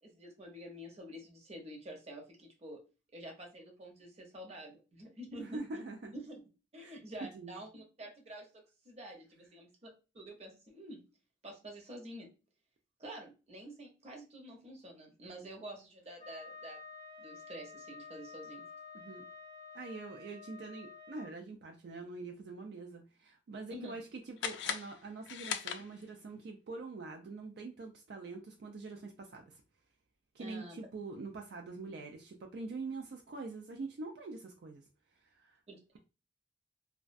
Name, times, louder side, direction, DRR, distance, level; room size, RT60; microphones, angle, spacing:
voice 1, 0.0-2.8 3.1-5.8 6.1-6.5 6.7-9.9 10.1-11.0 11.4-12.3 13.0-16.8 17.2-18.6 23.7-24.0 30.4-30.8 35.7-36.0, right 1 dB, 40° right, 1 dB, 0.7 m, -48 dB
voice 2, 5.4-6.1 6.8-7.0 7.3-7.6 18.9-19.3 19.7-29.6 30.3-34.8 35.3-35.6, right 3 dB, 65° right, 3 dB, 0.3 m, -44 dB
Wind instrument woodwind instrument, 16.2-21.3, left 4 dB, 25° left, 0.5 m, -50 dB
sound 1, 24.4-26.3, left 8 dB, 90° left, 0.3 m, -39 dB
2.3 x 2.2 x 2.5 m, 0.31 s
head